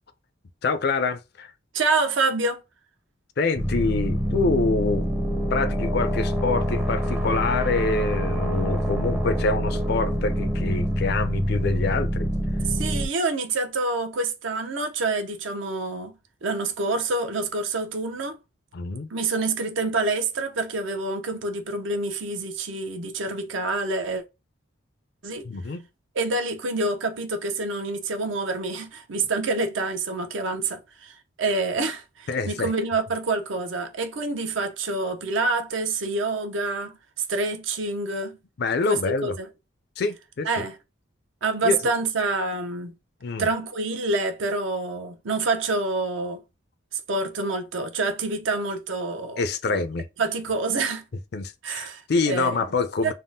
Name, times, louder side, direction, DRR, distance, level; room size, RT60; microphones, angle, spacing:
voice 1, 0.6-1.5 3.4-5.1 5.5-12.3 18.7-19.1 25.4-25.8 32.3-32.7 38.6-39.3 40.0-40.6 41.6-41.8 43.2-43.5 49.4-50.1 51.3-53.1, left 3 dB, 55° left, 0.4 m, -26 dB
voice 2, 1.7-2.6 12.7-16.1 16.4-18.4 19.1-24.2 25.2-25.5 26.1-37.0 37.3-38.4 38.9-39.4 40.4-40.8 41.4-42.9 43.4-46.4 46.9-49.4 49.7-49.8 50.2-51.0 51.6-52.6 53.0-53.1, right 3 dB, 75° right, 0.6 m, -27 dB
sound 1, 3.6-13.1, equal, 10° right, 0.5 m, -25 dB
3.5 x 2.1 x 2.6 m
head